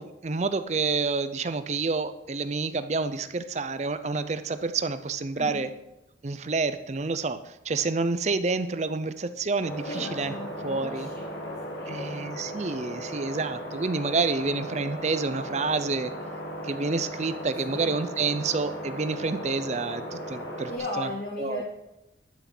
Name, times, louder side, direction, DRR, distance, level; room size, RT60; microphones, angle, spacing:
voice 1, 0.0-5.7 6.2-10.3 10.6-11.1 11.9-16.1 16.6-20.7 21.0-21.1 21.4-21.6, right 4 dB, 35° right, 11 dB, 0.5 m, -28 dB
voice 2, 5.3-5.7 9.9-12.3 17.7-18.0 20.7-21.6, left 2 dB, 50° left, -1 dB, 1.4 m, -36 dB
sound 1, 9.6-20.8, equal, 65° left, 1.9 m, -37 dB
11.5 x 6.2 x 6.0 m, 0.92 s
head